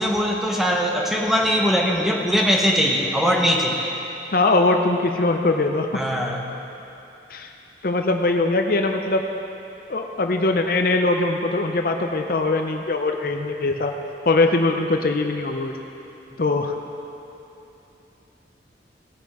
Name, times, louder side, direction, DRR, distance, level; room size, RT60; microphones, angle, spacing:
voice 1, 0.0-3.9 5.9-6.4, equal, ahead, -1 dB, 0.9 m, -21 dB
voice 2, 4.3-5.9 7.3-7.5 7.8-9.2 9.9-13.9 14.3-15.7 16.4-16.7, left 2 dB, 55° left, 4 dB, 0.6 m, -21 dB
17.5 x 6.8 x 4.8 m, 2.9 s
head